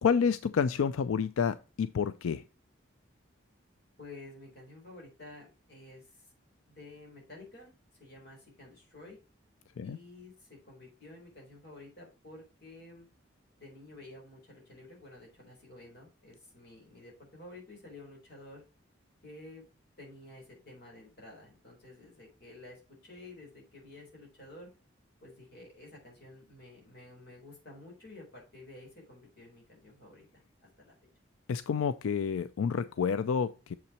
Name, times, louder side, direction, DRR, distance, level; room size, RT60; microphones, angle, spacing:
voice 1, 0.0-2.4 9.8-10.0 31.5-33.8, left 6 dB, 90° left, 0.4 m, -29 dB
voice 2, 4.0-6.2 6.7-7.7 8.0-9.2 9.8-13.1 13.6-18.6 19.2-19.6 20.0-24.7 25.2-30.3 30.8-30.9, left 2 dB, 50° left, 4.0 m, -51 dB
7.1 x 5.8 x 4.3 m
head